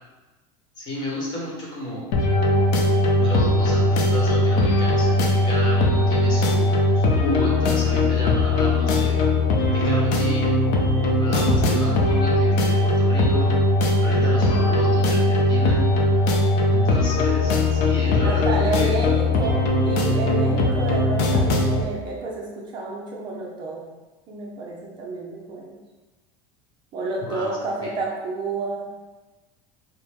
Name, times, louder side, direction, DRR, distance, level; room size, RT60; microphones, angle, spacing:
voice 1, 0.8-2.1 3.2-9.3 9.7-10.5 11.2-13.5 14.0-15.8 16.7-18.9 27.3-27.9, left 1 dB, 30° left, -4 dB, 1.1 m, -32 dB
sound 1, 2.1-21.8, left 1 dB, 60° left, 0.6 m, -20 dB
voice 2, 11.4-11.9 14.1-14.6 18.1-23.8 24.3-25.8 26.9-28.9, right 3 dB, 35° right, -3 dB, 0.6 m, -30 dB
4.4 x 2.1 x 3.5 m, 1.2 s
cardioid pair, 165°, 14 cm